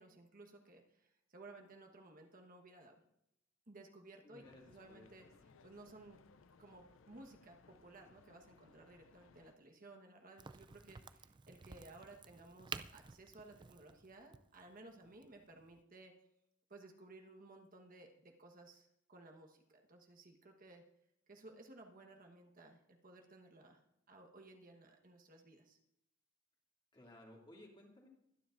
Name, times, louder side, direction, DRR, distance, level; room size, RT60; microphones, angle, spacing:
voice 1, 0.0-2.9 3.7-5.2 5.6-6.2 6.6-16.1 16.7-20.8 21.3-23.8 24.1-25.8, right 2 dB, 40° right, 2 dB, 1.3 m, -58 dB
voice 2, 4.2-5.5 26.9-28.1, left 1 dB, 25° left, -1 dB, 2.5 m, -59 dB
sound 1, 4.4-9.6, left 4 dB, 65° left, 0.5 m, -65 dB
Crack, 10.4-15.8, right 5 dB, 20° right, 0.3 m, -52 dB
23.5 x 10.0 x 2.6 m, 0.80 s
head